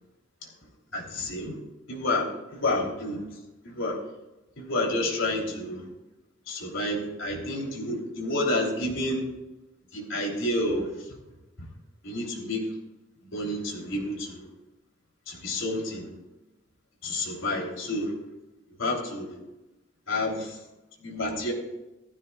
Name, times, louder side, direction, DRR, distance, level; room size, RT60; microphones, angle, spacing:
voice 1, 0.9-1.6 1.9-3.2 3.7-4.0 4.6-5.8 6.5-9.2 9.9-10.9 12.0-12.6 13.2-14.5 15.3-16.1 17.0-18.1 18.8-19.3 20.1-20.5 21.0-21.5, left 1 dB, 75° left, 0 dB, 3.3 m, -29 dB
15.5 x 14.5 x 2.4 m, 0.96 s
head